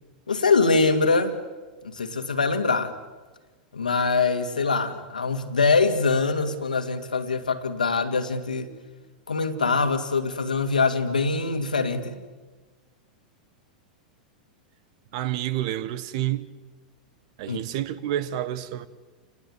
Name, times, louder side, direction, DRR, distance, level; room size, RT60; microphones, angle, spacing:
voice 1, 0.3-1.4 1.8-2.9 3.7-8.7 9.3-12.2 17.5-17.6, left 4 dB, 75° left, 2.2 m, -23 dB
voice 2, 15.1-16.5 17.4-18.9, right 13 dB, 50° right, 1.4 m, -29 dB
29.5 x 20.0 x 8.2 m
figure-of-eight pair, 90°, 4 cm